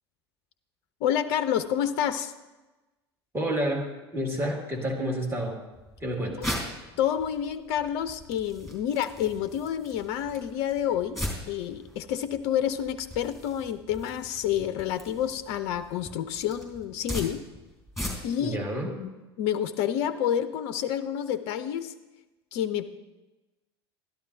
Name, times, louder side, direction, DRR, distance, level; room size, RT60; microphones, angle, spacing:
voice 1, 1.0-2.3 6.4-6.6 7.0-17.4 18.2-19.1 19.4-21.9 22.5-22.8, left 10 dB, 50° left, 12 dB, 0.5 m, -29 dB
voice 2, 3.3-5.6 6.0-6.5 18.4-18.9, equal, 15° right, 0 dB, 2.0 m, -29 dB
sound 1, 5.7-18.5, left 1 dB, ahead, 3.6 m, -40 dB
12.0 x 11.5 x 2.6 m, 1.1 s
figure-of-eight pair, 75°, 14 cm